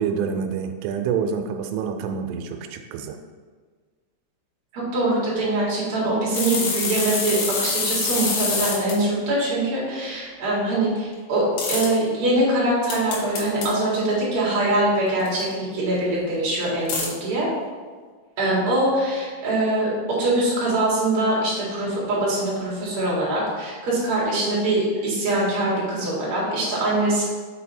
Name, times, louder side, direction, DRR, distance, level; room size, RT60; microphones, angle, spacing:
voice 1, 0.0-3.2, right 6 dB, 85° right, 5 dB, 3.1 m, -27 dB
voice 2, 4.7-17.5 18.4-19.9 20.2-27.2, right 1 dB, 50° right, -6 dB, 2.3 m, -23 dB
sound 1, 6.3-9.0 11.6-11.9 12.9-13.7 15.3-15.4 16.9-17.1, left 4 dB, 75° left, 3.5 m, -25 dB
7.2 x 4.6 x 4.3 m, 1.5 s
omnidirectional pair, 5.6 m